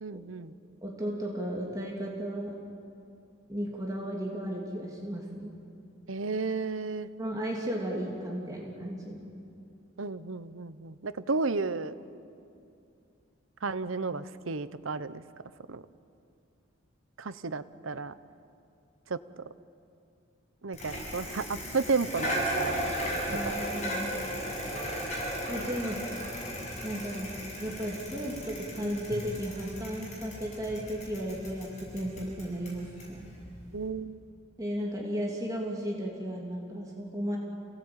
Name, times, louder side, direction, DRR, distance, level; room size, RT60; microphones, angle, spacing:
voice 1, 0.0-0.5 6.1-7.1 10.0-11.9 13.6-15.2 15.7-15.8 17.2-18.1 19.1-19.4 20.6-22.9 23.4-23.6 33.7-34.2, right 4 dB, 80° right, 14 dB, 0.9 m, -33 dB
voice 2, 0.8-2.5 3.5-5.6 7.2-9.3 23.3-24.1 25.5-26.0 26.8-33.2 34.6-37.4, equal, 15° right, -2 dB, 3.0 m, -35 dB
Bicycle, 20.7-33.9, equal, 35° left, 7.6 m, -36 dB
28.5 x 18.0 x 8.9 m, 2.6 s
head